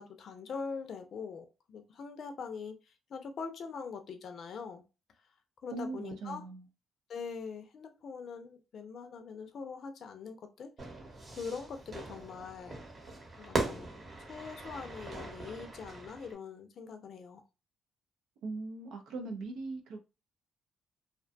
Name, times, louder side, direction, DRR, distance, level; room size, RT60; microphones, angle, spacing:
voice 1, 0.0-4.8 5.6-6.4 7.1-10.9 11.4-12.8 13.4-13.9 14.2-17.4, left 5 dB, 60° left, 0.4 m, -43 dB
voice 2, 5.7-6.7 18.4-20.0, right 3 dB, 85° right, 0.4 m, -40 dB
Fire / Fireworks, 10.8-16.3, right 3 dB, 40° right, 0.9 m, -40 dB
2.5 x 2.2 x 2.5 m
cardioid pair, 90°, 0 cm